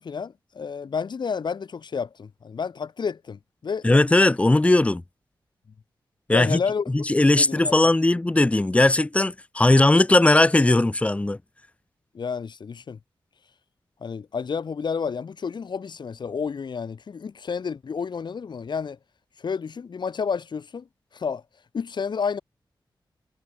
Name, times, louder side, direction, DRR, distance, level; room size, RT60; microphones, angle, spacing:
voice 1, 0.0-3.9 6.3-6.9 7.3-7.9 12.1-13.0 14.0-19.0 19.4-20.9 21.1-21.4 21.7-22.4, left 6 dB, 65° left, 5.8 m, -30 dB
voice 2, 3.8-5.0 6.3-6.6 6.9-11.4, left 2 dB, 15° left, 1.5 m, -18 dB
wide cardioid pair, 160°, 8 cm